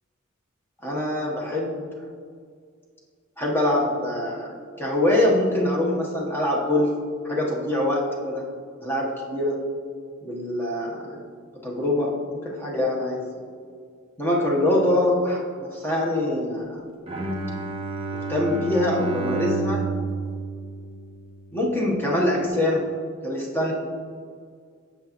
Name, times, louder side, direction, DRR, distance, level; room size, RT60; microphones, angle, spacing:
voice 1, 0.8-1.8 3.4-8.5 8.8-9.7 10.2-11.2 11.6-13.3 14.2-16.8 18.1-19.9 21.5-22.9 23.2-23.7, left 1 dB, 10° left, -3 dB, 1.0 m, -24 dB
Bowed string instrument, 17.1-21.5, right 3 dB, 30° right, 0.8 m, -30 dB
8.5 x 6.8 x 2.9 m, 2.1 s
head